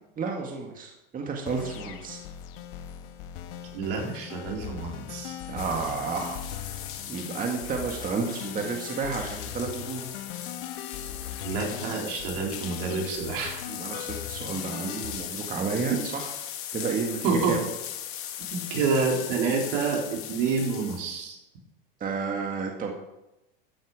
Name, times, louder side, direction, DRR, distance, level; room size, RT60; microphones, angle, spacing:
voice 1, 0.2-2.2 5.5-6.4 6.6-6.8 7.1-10.1 13.7-15.9 16.7-17.6 22.0-22.9, right 5 dB, 30° right, 1 dB, 2.0 m, -31 dB
sound 1, 1.5-15.2, left 10 dB, 70° left, 1.3 m, -40 dB
voice 2, 3.7-5.4 11.4-13.6 17.2-17.6 18.5-21.4, right 4 dB, 70° right, 0 dB, 4.1 m, -28 dB
sound 2, 5.6-21.0, left 10 dB, 50° left, 2.0 m, -38 dB
14.0 x 9.4 x 4.9 m, 0.92 s
hypercardioid pair, 105°, 29 cm